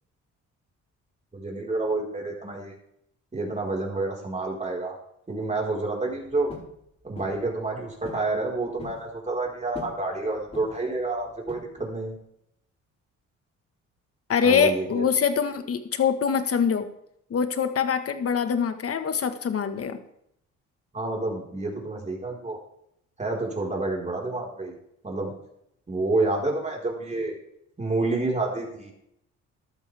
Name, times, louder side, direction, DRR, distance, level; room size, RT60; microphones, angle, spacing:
voice 1, 1.3-2.7 3.3-4.9 5.3-6.5 7.0-12.1 14.4-15.0 20.9-22.6 23.2-24.8 25.0-25.3 25.9-27.3 27.8-28.9, right 2 dB, 25° right, -1 dB, 4.6 m, -29 dB
sound 1, 6.5-6.7 7.2-7.4 8.0-8.3 8.6-9.0 9.7-10.0 10.5-10.9 11.5-12.0, left 2 dB, 20° left, 5.2 m, -41 dB
voice 2, 14.3-16.9 17.3-20.0, left 6 dB, 50° left, 9 dB, 1.5 m, -24 dB
14.0 x 12.0 x 3.5 m, 0.74 s
cardioid pair, 90°, 30 cm